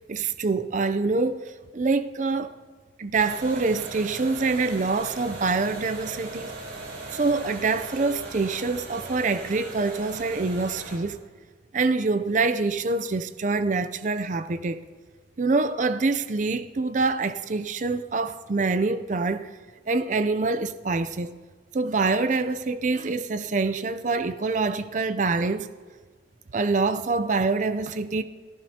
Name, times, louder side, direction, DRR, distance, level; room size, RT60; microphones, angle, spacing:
voice 1, 0.1-2.5 3.0-6.5 7.1-11.2 11.7-14.8 15.4-19.5 19.9-21.4 21.7-25.7 26.5-28.2, right 3 dB, 45° right, 0.5 m, -25 dB
sound 1, 3.1-11.0, right 2 dB, 75° right, 3.9 m, -39 dB
24.5 x 14.5 x 2.8 m
head